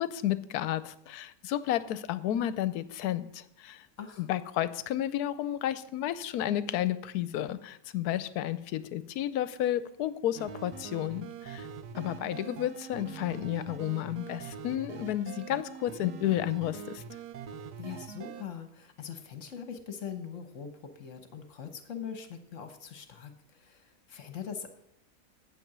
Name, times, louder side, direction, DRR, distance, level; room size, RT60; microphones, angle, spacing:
voice 1, 0.0-3.8 4.2-11.7 11.9-17.0, left 12 dB, 75° left, 15 dB, 1.1 m, -32 dB
sound 1, 10.4-18.4, right 7 dB, 85° right, 1.3 m, -43 dB
voice 2, 17.8-24.7, left 7 dB, 55° left, 7 dB, 1.3 m, -42 dB
9.2 x 7.8 x 6.0 m, 0.77 s
omnidirectional pair, 1.7 m